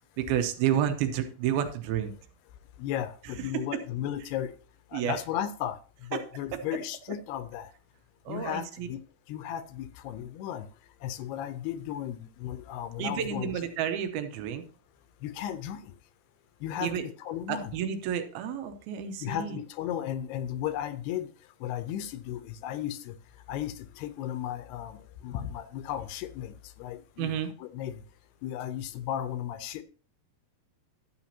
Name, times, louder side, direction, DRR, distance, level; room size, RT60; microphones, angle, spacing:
voice 1, 0.2-2.1 3.5-3.8 4.9-5.2 6.1-6.2 6.5-6.6 8.3-8.9 13.0-14.6 16.8-17.1 17.5-19.6 27.2-27.5, right 9 dB, 80° right, 7 dB, 2.5 m, -30 dB
voice 2, 2.8-4.5 4.9-5.8 6.0-7.7 8.3-9.0 9.3-10.7 11.0-13.5 15.2-15.8 16.6-17.7 19.2-21.3 21.6-23.1 23.5-28.0 28.4-29.8, left 11 dB, 80° left, 12 dB, 2.7 m, -35 dB
12.5 x 8.9 x 2.8 m, 0.39 s
omnidirectional pair, 4.8 m